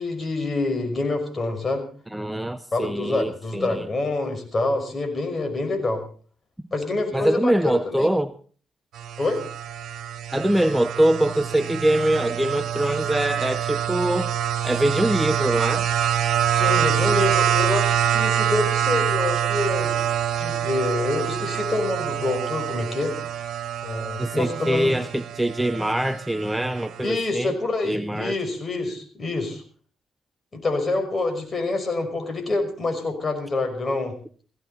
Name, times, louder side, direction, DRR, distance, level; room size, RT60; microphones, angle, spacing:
voice 1, 0.0-1.8 2.7-6.0 6.7-8.1 9.2-9.4 16.5-20.1 20.4-23.1 23.8-24.9 27.0-29.6 30.5-34.1, left 2 dB, 30° left, 5.5 m, -26 dB
voice 2, 2.1-3.9 7.1-8.3 10.3-14.3 14.6-15.9 24.2-27.5 27.8-28.4, right 1 dB, 5° right, 0.7 m, -23 dB
sound 1, 8.9-27.1, right 10 dB, 70° right, 2.1 m, -25 dB
18.0 x 16.0 x 4.1 m
cardioid pair, 90°, 0 cm